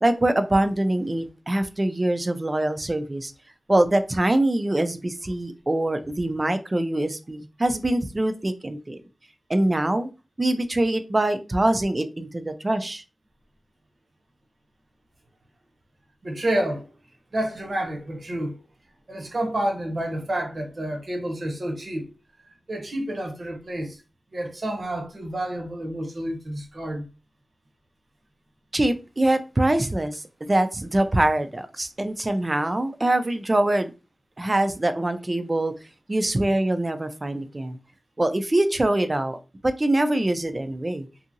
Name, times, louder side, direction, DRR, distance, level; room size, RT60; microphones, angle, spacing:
voice 1, 0.0-3.3 3.7-9.0 9.5-10.1 10.4-13.0 28.7-33.9 34.4-35.7 36.1-37.8 38.2-39.4 39.6-41.1, right 1 dB, 30° right, 0.4 m, -24 dB
voice 2, 16.2-16.9 17.3-18.6 19.1-22.1 22.7-24.0 24.3-27.1, right 1 dB, 50° right, 0.7 m, -29 dB
2.7 x 2.7 x 2.6 m
wide cardioid pair, 85°, 0 cm